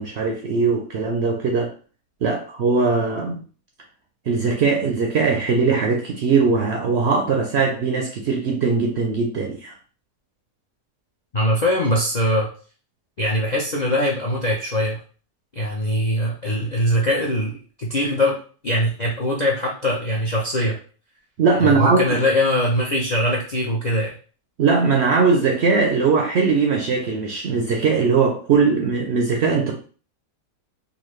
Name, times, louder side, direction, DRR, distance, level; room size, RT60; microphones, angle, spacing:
voice 1, 0.0-1.7 2.2-3.4 4.3-9.7 21.4-22.2 24.6-29.7, right 4 dB, 65° right, 2 dB, 0.7 m, -20 dB
voice 2, 11.3-12.5 13.2-15.0 15.5-18.4 18.6-20.8 21.6-24.1, equal, 55° left, -3 dB, 0.4 m, -22 dB
4.0 x 2.4 x 3.1 m, 0.40 s
omnidirectional pair, 1.6 m